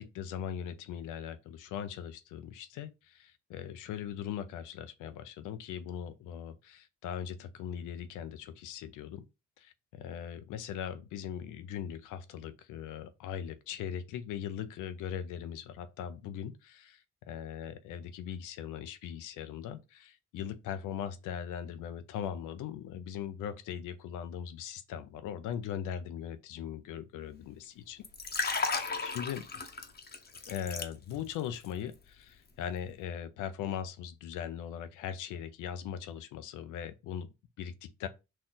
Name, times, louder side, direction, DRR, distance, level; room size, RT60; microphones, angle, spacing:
voice 1, 0.0-9.2 9.6-28.0 28.4-29.5 30.5-38.1, left 9 dB, 90° left, 0.6 m, -40 dB
Liquid, 28.0-31.4 31.7-31.9, left 4 dB, 30° left, 0.8 m, -35 dB
4.3 x 2.9 x 3.8 m
cardioid pair, 90°, 30 cm